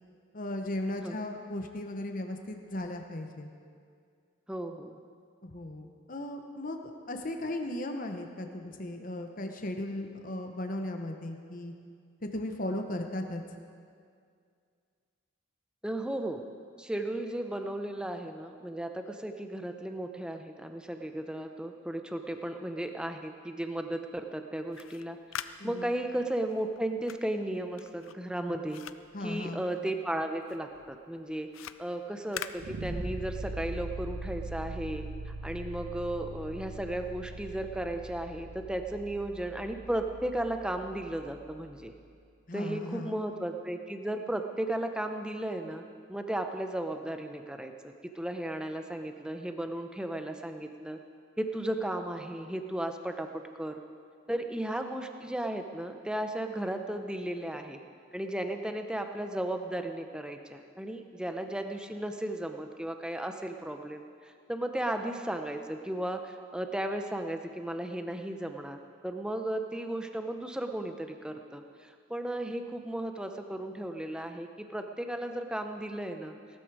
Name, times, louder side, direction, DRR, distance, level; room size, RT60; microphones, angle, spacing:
voice 1, 0.3-3.5 5.4-6.8 7.1-11.7 12.2-13.4 25.6-25.9 29.1-29.7 42.5-43.2, left 1 dB, 40° left, 4 dB, 0.9 m, -36 dB
voice 2, 4.5-5.0 15.8-16.4 16.8-25.2 25.6-28.8 29.2-41.9 42.5-45.8 46.1-51.0 51.4-53.8 54.3-57.8 58.1-76.4, right 1 dB, 5° right, 6 dB, 0.6 m, -35 dB
sound 1, 24.6-30.1 30.4-33.4, left 9 dB, 80° left, 0.5 m, -45 dB
sound 2, 32.6-41.6, right 2 dB, 65° right, 1.3 m, -41 dB
18.5 x 12.5 x 4.8 m, 2.3 s
head